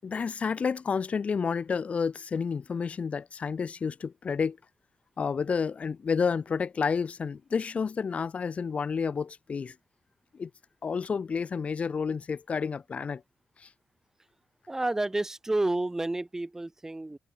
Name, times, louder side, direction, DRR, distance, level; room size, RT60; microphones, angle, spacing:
voice 1, 0.0-4.6 5.2-9.8 10.3-10.5 10.8-13.2 13.6-13.7, left 5 dB, 50° left, 1.8 m, -30 dB
voice 2, 14.7-17.2, right 2 dB, 15° right, 2.3 m, -30 dB
cardioid pair, 70°, 3 cm